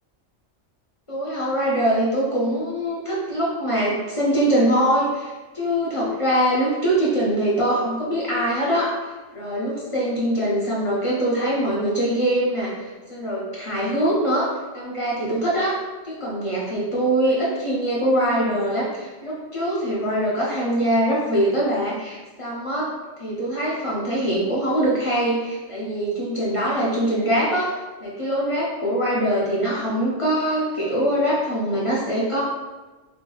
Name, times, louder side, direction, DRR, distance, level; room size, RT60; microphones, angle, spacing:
voice 1, 1.1-8.9 9.3-12.7 13.1-15.8 16.0-22.9 23.2-27.7 28.0-32.4, right 1 dB, 45° left, -6 dB, 0.4 m, -23 dB
3.3 x 3.1 x 2.2 m, 1.2 s
omnidirectional pair, 1.2 m